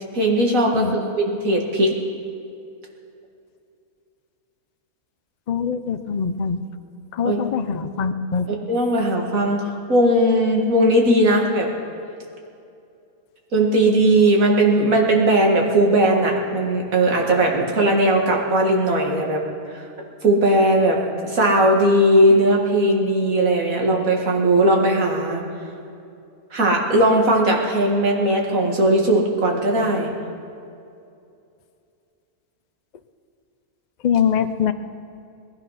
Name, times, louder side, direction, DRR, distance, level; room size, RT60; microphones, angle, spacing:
voice 1, 0.1-1.9 7.2-7.4 8.7-11.7 13.5-19.4 19.7-19.8 20.2-21.0 21.2-25.4 26.5-30.1, right 1 dB, 60° right, 0 dB, 2.2 m, -18 dB
voice 2, 5.5-6.6 7.1-8.5 34.0-34.7, left 7 dB, 85° left, 9 dB, 0.3 m, -23 dB
19.5 x 11.5 x 5.7 m, 2.5 s
omnidirectional pair, 1.6 m